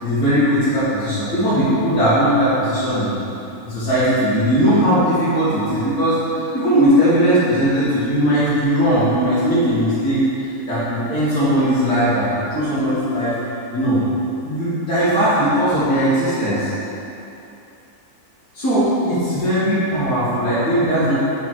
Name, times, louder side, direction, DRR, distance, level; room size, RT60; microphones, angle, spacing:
voice 1, 0.0-3.2 3.6-10.2 10.7-13.3 13.7-14.0 14.4-16.7 18.5-21.1, equal, 80° left, -15 dB, 2.1 m, -18 dB
5.0 x 4.8 x 4.4 m, 2.9 s
omnidirectional pair, 1.7 m